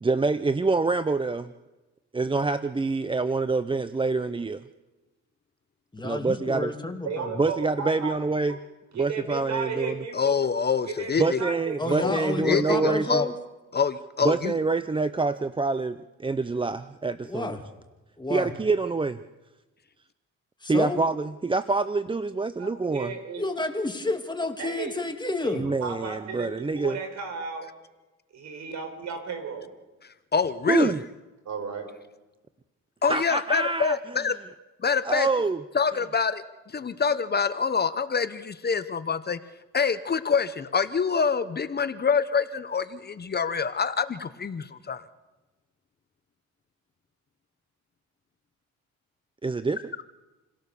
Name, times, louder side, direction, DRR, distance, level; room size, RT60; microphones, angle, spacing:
voice 1, 0.0-1.5 2.1-4.6 6.0-6.7 7.4-8.6 9.0-9.9 11.2-13.2 14.2-17.6 18.3-19.2 20.7-23.1 25.5-27.0 30.7-31.0 33.1-34.0 35.0-35.6 49.4-49.9, right 3 dB, 15° right, 13 dB, 0.6 m, -26 dB
voice 2, 5.9-7.4 11.8-13.3 17.2-17.6 18.2-18.5 20.6-21.0 23.4-25.7, left 2 dB, 15° left, 4 dB, 2.5 m, -30 dB
voice 3, 7.0-8.2 8.5-8.6 8.9-10.4 10.9-11.9 22.6-23.4 24.6-24.9 25.4-26.5 26.8-27.7 28.3-29.7 31.5-31.9, right 5 dB, 65° right, 6 dB, 5.1 m, -34 dB
voice 4, 10.1-11.4 11.9-13.3 13.7-14.6 30.3-30.9 33.0-34.3 34.8-35.3 35.7-36.4 36.7-39.4 39.7-45.0, left 5 dB, 35° left, 12 dB, 0.9 m, -26 dB
28.0 x 17.0 x 6.9 m, 1.1 s
cardioid pair, 90°, 30 cm